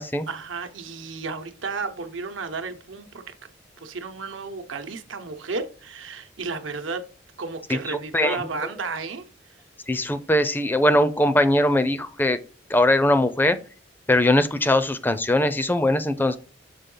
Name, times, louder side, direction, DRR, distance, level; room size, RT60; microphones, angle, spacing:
voice 1, 0.3-3.3 3.8-7.1 7.4-9.3, right 4 dB, 85° right, 0.9 m, -33 dB
voice 2, 7.7-8.4 9.9-12.4 12.7-13.6 14.1-16.4, left 1 dB, 10° left, 0.4 m, -21 dB
6.7 x 4.6 x 3.8 m
head